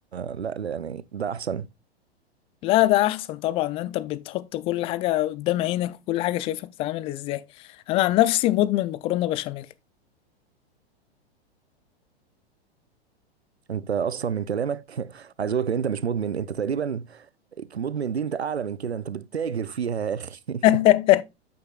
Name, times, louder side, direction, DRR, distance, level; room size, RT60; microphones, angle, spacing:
voice 1, 0.1-1.7 13.7-17.3 17.6-20.6, right 7 dB, 85° right, 0.6 m, -29 dB
voice 2, 2.6-7.4 7.9-9.7 20.6-21.2, left 15 dB, 20° left, 0.3 m, -23 dB
8.5 x 6.4 x 2.3 m
figure-of-eight pair, 100°, 32 cm